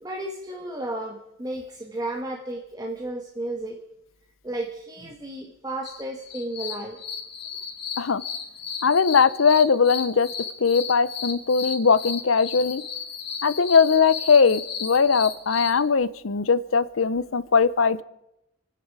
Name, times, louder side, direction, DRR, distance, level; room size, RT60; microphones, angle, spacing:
voice 1, 0.0-3.8 4.4-7.0, right 1 dB, 20° right, 1 dB, 1.4 m, -33 dB
sound 1, 5.8-15.7, left 7 dB, 55° left, 2.8 m, -34 dB
voice 2, 8.8-10.3 10.6-12.8 13.4-18.0, left 5 dB, 90° left, 17 dB, 0.7 m, -20 dB
28.0 x 9.7 x 4.8 m, 0.86 s
head